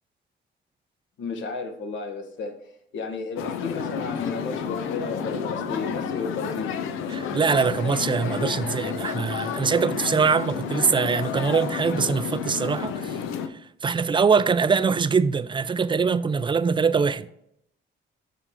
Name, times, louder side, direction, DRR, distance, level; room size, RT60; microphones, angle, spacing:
voice 1, 1.2-2.6 2.9-6.8, left 4 dB, 70° left, 1.2 m, -32 dB
sound 1, 3.4-13.5, left 7 dB, 90° left, 0.7 m, -31 dB
voice 2, 7.1-13.2 13.8-17.3, right 5 dB, 25° right, 0.4 m, -23 dB
7.2 x 5.6 x 3.6 m
cardioid pair, 90°, 20 cm